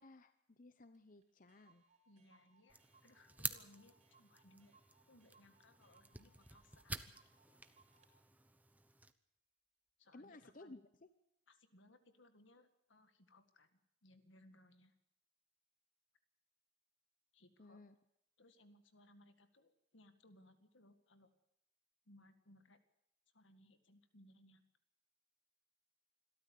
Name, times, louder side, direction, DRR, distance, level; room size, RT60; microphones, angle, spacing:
voice 1, 0.0-1.8 10.1-11.1 17.6-18.0, left 2 dB, 45° left, 10 dB, 0.9 m, -58 dB
Clock, 0.9-1.0 1.2-1.3 1.5-8.1, right 4 dB, 35° right, 4.0 m, -72 dB
voice 2, 2.1-4.8 5.1-7.1 10.0-10.8 11.5-15.0 17.3-17.8 18.4-21.3 22.1-22.8 23.3-24.6, left 1 dB, 80° left, 9 dB, 2.0 m, -66 dB
sound 1, 2.7-9.1, right 3 dB, 10° right, 0.9 m, -50 dB
25.5 x 13.5 x 8.5 m, 0.80 s
head